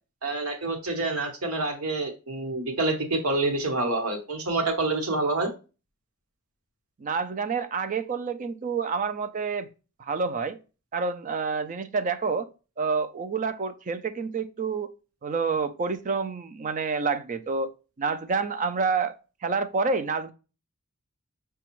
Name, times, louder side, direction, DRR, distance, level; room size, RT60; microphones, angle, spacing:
voice 1, 0.2-5.5, right 2 dB, 75° right, 1.1 m, -27 dB
voice 2, 7.0-9.7 10.0-10.6 10.9-12.5 12.8-14.9 15.2-17.7 18.0-19.2 19.4-20.3, right 4 dB, 35° right, 0.4 m, -28 dB
5.9 x 2.3 x 2.9 m
head